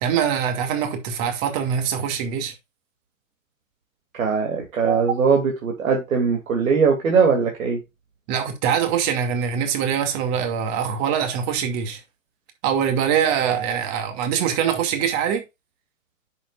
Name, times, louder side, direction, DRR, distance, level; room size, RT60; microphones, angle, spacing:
voice 1, 0.0-2.5 4.9-5.0 8.3-12.0 12.6-15.4, right 8 dB, 35° right, 2.5 m, -23 dB
voice 2, 4.1-7.8, right 5 dB, 75° right, 2.9 m, -20 dB
9.8 x 6.9 x 2.5 m
hypercardioid pair, 135°, 41 cm